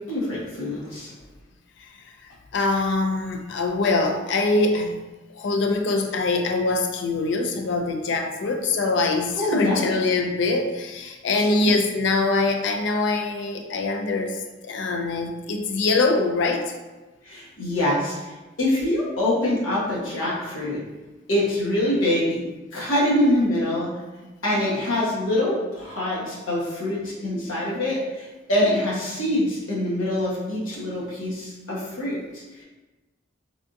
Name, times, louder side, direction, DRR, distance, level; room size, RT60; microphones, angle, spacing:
voice 1, 0.1-1.1 9.3-9.8 11.4-11.7 17.2-20.8 21.3-22.4 22.7-23.9 24.4-32.2, left 1 dB, 85° left, -6 dB, 1.1 m, -24 dB
voice 2, 2.5-5.0 5.3-16.7, left 3 dB, 65° left, 5 dB, 0.3 m, -23 dB
3.4 x 2.4 x 2.6 m, 1.2 s
head